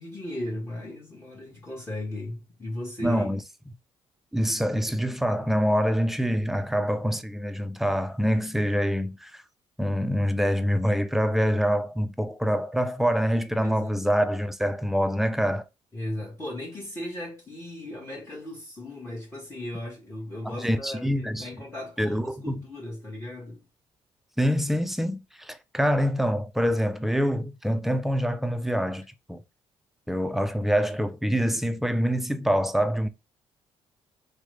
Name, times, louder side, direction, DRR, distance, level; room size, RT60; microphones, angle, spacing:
voice 1, 0.0-3.3 13.6-14.0 15.9-23.6, left 1 dB, 20° left, 1.1 m, -36 dB
voice 2, 3.0-3.4 4.3-9.4 9.8-15.6 20.4-21.5 22.0-22.6 24.4-29.4 30.1-33.1, equal, ahead, 0.4 m, -25 dB
3.0 x 2.0 x 3.2 m
supercardioid pair, 70°, 12 cm